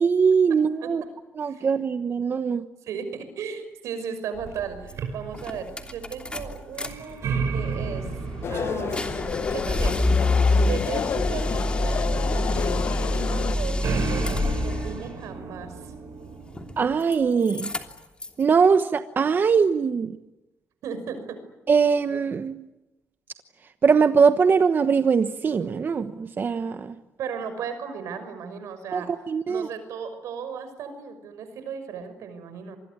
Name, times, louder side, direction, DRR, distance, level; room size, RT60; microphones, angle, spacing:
voice 1, 0.0-1.0 1.4-2.6 16.8-17.7 18.4-20.1 21.7-22.7 23.8-26.9 28.9-29.7, right 5 dB, 40° right, 9 dB, 1.2 m, -21 dB
voice 2, 2.8-7.2 7.5-8.1 8.5-10.0 10.7-15.9 20.8-21.4 27.2-29.1 29.5-32.8, right 6 dB, 85° right, 10 dB, 5.9 m, -36 dB
sound 1, 4.3-16.7, right 5 dB, 70° right, 5.4 m, -34 dB
sound 2, 4.9-5.0 5.3-6.9 7.2-15.0 16.5-17.2 17.4-18.4, left 2 dB, 20° left, 3.1 m, -26 dB
sound 3, 8.4-13.6, left 7 dB, 55° left, 1.0 m, -30 dB
26.0 x 21.5 x 9.7 m, 1.0 s
cardioid pair, 100°, 5 cm